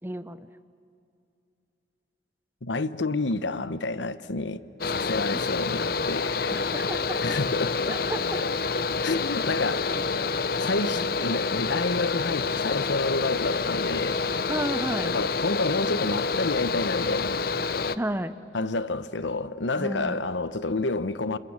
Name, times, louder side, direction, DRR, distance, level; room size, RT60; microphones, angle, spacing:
voice 1, 0.0-0.5 5.3-5.4 6.5-7.2 7.8-8.4 10.8-11.0 14.5-15.1 18.0-18.3 19.8-20.2, right 1 dB, 10° right, 0.7 m, -32 dB
voice 2, 2.6-6.6 7.2-8.0 9.0-10.0 10.6-14.2 15.0-17.4 18.5-21.4, left 3 dB, 85° left, 0.9 m, -29 dB
Mechanical fan, 4.8-18.0, left 4 dB, 55° left, 0.6 m, -28 dB
29.0 x 26.5 x 7.4 m
head